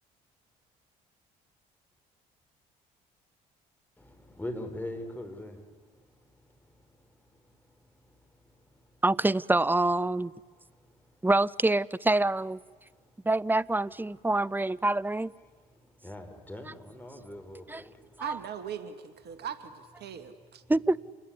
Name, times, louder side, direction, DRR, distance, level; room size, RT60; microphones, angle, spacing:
voice 1, 4.0-9.0 10.4-11.3 12.8-13.3 15.4-18.3 19.3-19.5 20.1-20.3 20.6-20.7, left 1 dB, 10° left, 4 dB, 6.6 m, -45 dB
voice 2, 9.0-10.3 11.2-12.6 13.2-15.3 17.7-17.8 18.2-18.4 20.7-21.0, right 2 dB, 10° right, 19 dB, 0.8 m, -26 dB
voice 3, 18.2-20.6, right 8 dB, 55° right, 9 dB, 2.2 m, -39 dB
28.0 x 21.0 x 9.8 m, 1.6 s
hypercardioid pair, 55°, 20 cm